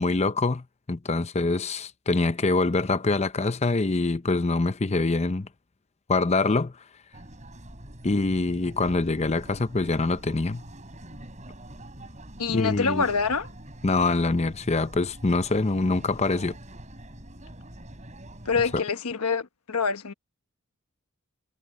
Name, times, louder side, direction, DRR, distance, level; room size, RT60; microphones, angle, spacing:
voice 1, 0.0-5.5 6.1-6.7 8.0-10.6 12.5-13.1 13.8-16.5, left 3 dB, 30° left, 0.6 m, -25 dB
sound 1, 7.1-18.8, right 1 dB, 35° right, 5.8 m, -44 dB
voice 2, 12.4-13.5 18.4-20.1, left 5 dB, 90° left, 1.2 m, -26 dB
head